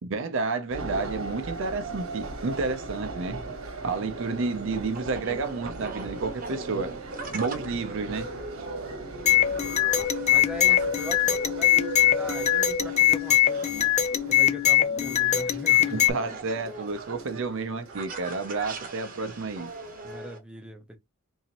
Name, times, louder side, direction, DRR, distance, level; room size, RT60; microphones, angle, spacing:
voice 1, 0.0-3.5 3.8-6.9 7.3-8.3 15.9-19.7, right 4 dB, 65° right, 0.6 m, -30 dB
sound 1, 0.7-20.2, right 2 dB, 85° right, 1.1 m, -38 dB
sound 2, 4.1-20.4, right 3 dB, 40° right, 0.9 m, -42 dB
sound 3, 9.2-16.1, left 12 dB, 35° left, 0.5 m, -22 dB
voice 2, 9.3-9.8 10.3-14.0 14.3-16.1 20.0-21.0, equal, 5° right, 0.7 m, -41 dB
3.9 x 2.7 x 2.9 m
head